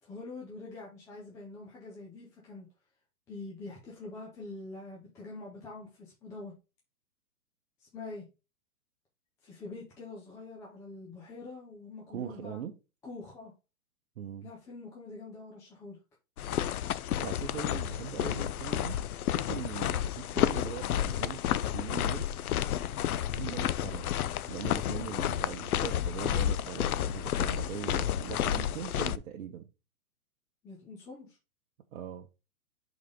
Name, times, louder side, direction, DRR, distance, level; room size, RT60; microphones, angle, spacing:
voice 1, 0.0-2.7 3.3-6.6 7.8-8.2 9.4-12.6 13.0-13.5 14.4-16.0 30.6-31.4, left 3 dB, 5° left, 0.6 m, -45 dB
voice 2, 12.1-12.7 14.2-14.5 17.2-19.0 19.4-22.3 23.4-24.1 24.5-29.7 31.9-32.3, right 9 dB, 65° right, 1.0 m, -41 dB
sound 1, 16.4-29.2, left 11 dB, 80° left, 0.6 m, -31 dB
5.3 x 4.0 x 5.0 m
hypercardioid pair, 155°, 43 cm